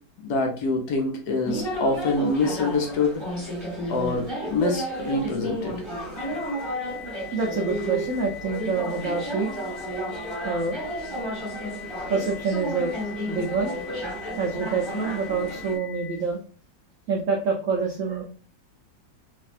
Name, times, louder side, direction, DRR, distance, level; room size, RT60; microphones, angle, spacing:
voice 1, 0.2-3.2 3.9-5.8, left 3 dB, 70° left, 2 dB, 1.1 m, -25 dB
sound 1, 1.4-15.8, equal, 15° right, 1.3 m, -32 dB
sound 2, 6.2-16.2, left 9 dB, 85° left, 0.5 m, -42 dB
voice 2, 7.3-9.5 10.4-10.8 12.1-13.0 13.3-13.7 14.4-16.4 17.1-18.2, right 4 dB, 75° right, 0 dB, 0.7 m, -26 dB
3.3 x 2.5 x 2.4 m, 0.40 s
omnidirectional pair, 2.0 m